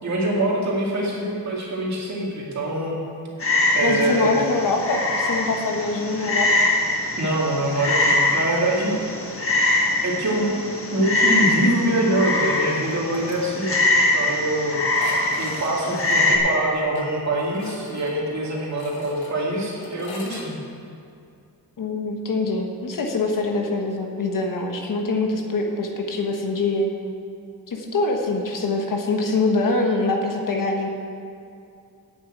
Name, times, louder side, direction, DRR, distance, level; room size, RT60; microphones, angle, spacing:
voice 1, 0.0-3.0 3.7-4.3 7.2-9.0 10.0-10.5 10.9-13.7 14.1-14.8 15.4-20.5, right 1 dB, 45° right, -3 dB, 2.3 m, -24 dB
Frog, 3.4-16.4, left 2 dB, 35° left, 1.5 m, -23 dB
voice 2, 3.8-6.5 21.8-26.9 27.7-30.9, left 3 dB, 60° left, 2 dB, 1.3 m, -24 dB
sound 1, 12.8-13.4 13.7-13.8 14.0-14.1 14.9-20.5, left 3 dB, 85° left, 1.5 m, -42 dB
8.7 x 7.1 x 8.6 m, 2.5 s
wide cardioid pair, 180°, 37 cm